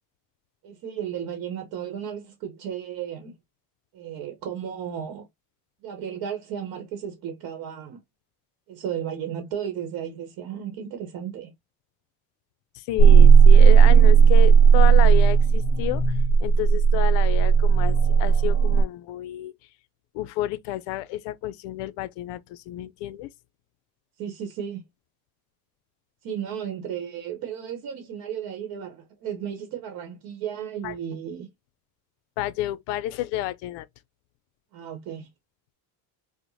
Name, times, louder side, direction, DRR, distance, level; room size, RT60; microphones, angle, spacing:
voice 1, 0.6-3.4 3.9-5.2 5.8-8.0 8.7-11.5 24.2-24.8 26.2-31.5 34.7-35.3, right 9 dB, 50° right, 0.9 m, -34 dB
voice 2, 12.7-19.5 20.1-23.3 30.8-30.9 32.4-33.9, left 14 dB, 70° left, 0.5 m, -30 dB
sound 1, 13.0-18.8, right 7 dB, 35° left, 1.3 m, -15 dB
4.7 x 2.1 x 2.6 m
cardioid pair, 155°, 43 cm